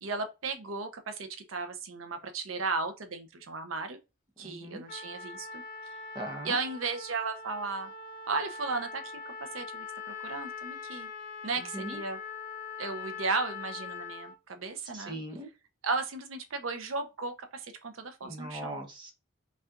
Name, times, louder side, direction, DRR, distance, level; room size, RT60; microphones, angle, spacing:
voice 1, 0.0-4.0 4.4-5.6 6.4-7.9 8.3-11.1 11.4-12.2 12.8-15.2 15.8-18.8, right 4 dB, 85° right, 0.6 m, -35 dB
voice 2, 4.4-4.8 6.1-6.6 11.6-12.0 14.9-15.5 18.2-19.1, right 1 dB, 25° right, 0.9 m, -40 dB
Trumpet, 4.9-14.4, left 5 dB, 40° left, 0.6 m, -42 dB
5.4 x 2.4 x 2.5 m
head